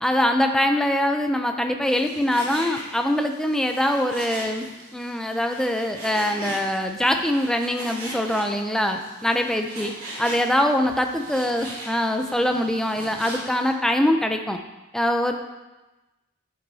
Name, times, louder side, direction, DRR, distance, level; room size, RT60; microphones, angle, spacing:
voice 1, 0.0-4.6 4.9-9.9 10.2-14.6 14.9-15.3, left 1 dB, ahead, 5 dB, 0.4 m, -23 dB
Frying (food), 1.8-13.7, right 1 dB, 70° right, 2.8 m, -39 dB
9.0 x 7.8 x 2.7 m, 1.1 s
head